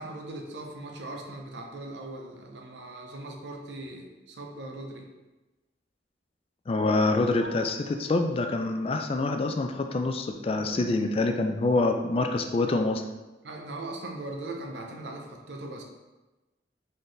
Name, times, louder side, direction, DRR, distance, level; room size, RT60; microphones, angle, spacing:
voice 1, 0.0-5.1 10.5-11.0 13.4-15.8, right 2 dB, 75° right, 2 dB, 0.7 m, -39 dB
voice 2, 6.7-13.0, left 2 dB, 30° left, 5 dB, 0.3 m, -26 dB
sound 1, 7.4-8.5, equal, 70° left, 1.0 m, -48 dB
4.1 x 4.0 x 3.2 m, 1.1 s
head